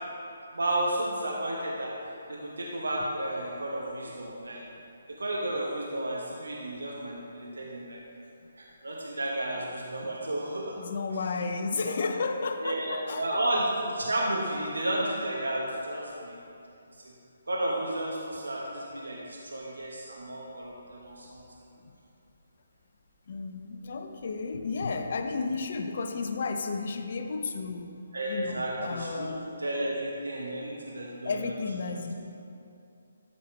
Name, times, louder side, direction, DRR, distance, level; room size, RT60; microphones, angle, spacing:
voice 1, 0.5-1.9 2.3-4.6 5.2-8.0 8.6-10.8 11.9-12.0 12.6-13.7 13.9-16.4 17.5-21.4 28.1-29.3 29.6-31.4 31.9-32.0, right 1 dB, 90° right, -3 dB, 1.1 m, -32 dB
voice 2, 10.8-13.4 21.9-22.0 23.3-27.9 28.3-29.6 31.2-32.1, left 4 dB, 55° left, 6 dB, 0.7 m, -33 dB
13.0 x 5.3 x 3.3 m, 2.7 s
hypercardioid pair, 155°, 0 cm